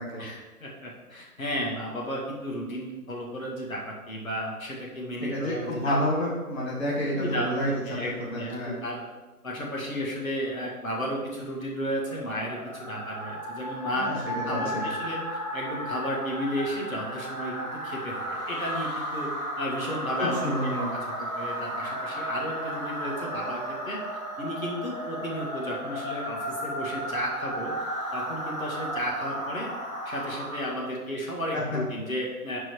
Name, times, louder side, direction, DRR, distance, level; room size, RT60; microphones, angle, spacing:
voice 1, 0.2-5.9 7.1-7.6 7.9-9.0 9.4-14.1 14.4-15.2 15.5-19.3 19.6-23.6 23.9-24.0 24.4-27.7 28.1-29.7 30.1-32.6, equal, 60° left, -3 dB, 2.1 m, -33 dB
voice 2, 5.2-8.8 14.0-14.2 14.5-14.8 20.2-20.9 31.5-31.8, equal, 45° left, -6 dB, 1.9 m, -29 dB
sound 1, 12.0-30.9, right 1 dB, 25° left, 1.9 m, -34 dB
10.0 x 4.8 x 4.7 m, 1.2 s
hypercardioid pair, 175°, 46 cm